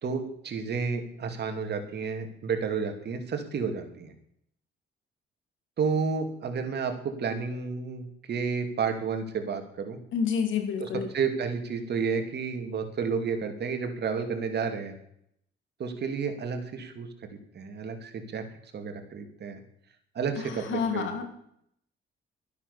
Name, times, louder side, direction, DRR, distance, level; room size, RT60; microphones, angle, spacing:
voice 1, 0.0-4.1 5.8-10.0 10.8-10.9 11.1-14.9 15.8-17.1 17.5-18.4 18.7-19.6 20.1-21.3, right 5 dB, 55° right, 6 dB, 2.7 m, -31 dB
voice 2, 10.1-11.1 20.4-21.3, left 6 dB, 75° left, 6 dB, 3.1 m, -29 dB
13.0 x 10.0 x 6.9 m, 0.70 s
cardioid pair, 90°, 20 cm